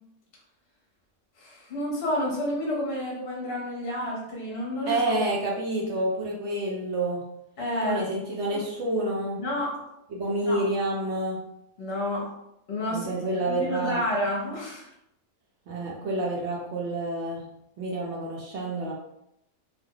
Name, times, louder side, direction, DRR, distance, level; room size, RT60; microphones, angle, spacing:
voice 1, 1.4-5.0 7.6-8.0 8.5-8.6 9.4-9.8 10.4-10.6 11.8-12.3 12.7-13.1 13.3-14.9, left 1 dB, 50° left, -3 dB, 0.9 m, -30 dB
voice 2, 4.9-7.2 7.8-9.4 10.1-11.4 12.9-14.0 15.7-17.4 17.8-18.9, right 1 dB, 60° right, -3 dB, 0.8 m, -28 dB
2.7 x 2.1 x 3.6 m, 0.82 s
omnidirectional pair, 1.5 m